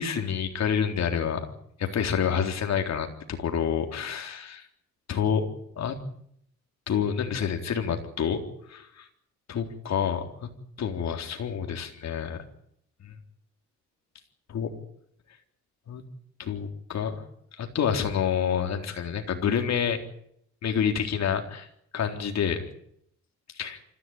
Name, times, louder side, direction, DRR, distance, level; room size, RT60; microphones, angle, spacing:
voice 1, 0.0-1.5 1.8-4.6 5.1-5.5 5.8-6.0 6.9-8.4 8.7-9.0 9.5-10.2 10.8-12.4 14.5-14.7 15.9-16.0 16.4-17.2 17.6-20.0 20.6-21.4 21.9-22.6 23.6-23.8, left 7 dB, 60° left, 4 dB, 3.9 m, -28 dB
26.0 x 15.0 x 9.1 m, 0.71 s
cardioid pair, 90°, 30 cm